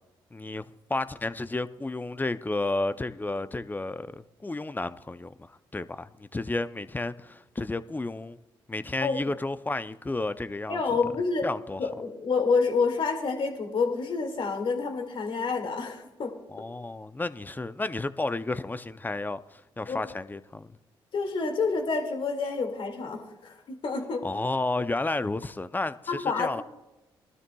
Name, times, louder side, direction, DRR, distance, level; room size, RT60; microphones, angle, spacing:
voice 1, 0.3-8.4 8.7-10.8 11.4-11.8 16.5-20.8 24.2-26.6, left 2 dB, 20° left, 0.5 m, -32 dB
voice 2, 10.7-11.5 11.8-16.3 19.9-20.0 21.1-24.2 26.1-26.5, left 4 dB, 60° left, 2.2 m, -28 dB
19.5 x 12.5 x 2.3 m
supercardioid pair, 60°, 10 cm